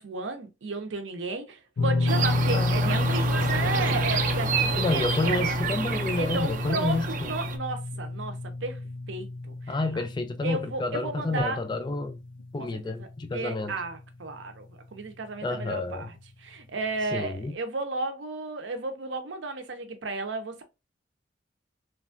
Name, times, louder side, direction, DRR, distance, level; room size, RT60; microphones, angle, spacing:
voice 1, 0.0-5.5 6.2-8.8 9.1-9.8 10.4-11.6 12.6-14.7 14.9-16.1 16.4-20.6, right 3 dB, 85° right, 0.7 m, -33 dB
sound 1, 1.8-14.0 14.3-14.5 16.2-16.3, left 2 dB, 90° left, 0.5 m, -30 dB
sound 2, 2.1-7.6, right 5 dB, 45° right, 0.4 m, -30 dB
voice 2, 2.5-3.1 4.8-7.3 9.7-12.2 12.5-13.8 15.4-16.1 17.1-17.5, left 2 dB, 25° left, 0.3 m, -30 dB
3.1 x 2.3 x 2.5 m
head